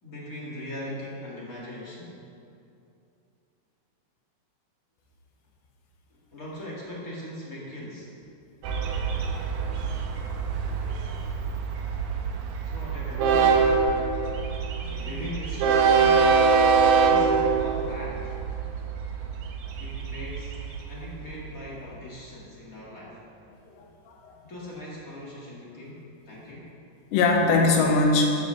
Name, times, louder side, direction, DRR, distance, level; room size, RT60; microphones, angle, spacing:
voice 1, 0.0-2.1 6.1-8.1 12.6-13.9 14.9-16.6 17.1-18.3 19.8-20.6 20.9-23.2 24.4-26.8, left 1 dB, 30° left, -6 dB, 1.6 m, -39 dB
Train, 8.6-21.6, right 5 dB, 75° right, 2.3 m, -24 dB
voice 2, 23.7-24.3 27.1-28.2, left 3 dB, 90° left, 1 dB, 3.3 m, -22 dB
13.5 x 13.0 x 3.4 m, 2.6 s
omnidirectional pair, 4.9 m